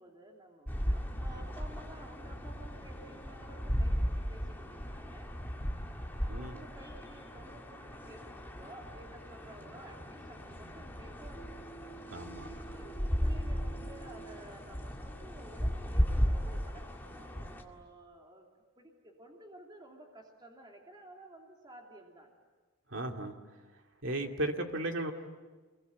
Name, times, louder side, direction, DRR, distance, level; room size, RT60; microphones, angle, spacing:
voice 1, 0.0-5.3 6.1-18.5 18.8-22.3, right 1 dB, 20° right, 1 dB, 2.8 m, -53 dB
sound 1, 0.7-17.6, equal, 10° left, 2.0 m, -36 dB
voice 2, 6.3-6.6 12.1-12.5 22.9-23.3 24.0-25.1, right 1 dB, 60° right, 4 dB, 2.2 m, -35 dB
26.5 x 22.5 x 9.3 m, 1.3 s
head